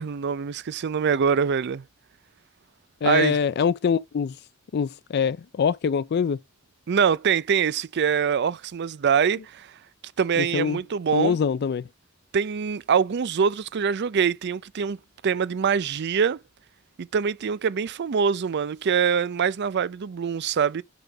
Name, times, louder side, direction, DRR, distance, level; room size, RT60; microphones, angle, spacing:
voice 1, 0.0-1.8 3.0-3.4 6.9-9.7 10.2-11.4 12.3-15.0 15.2-16.4 17.0-20.8, right 6 dB, 55° right, 0.4 m, -24 dB
voice 2, 3.0-4.3 4.7-6.4 10.4-10.8 11.1-11.8, left 6 dB, 50° left, 0.4 m, -24 dB
7.9 x 3.8 x 5.8 m
head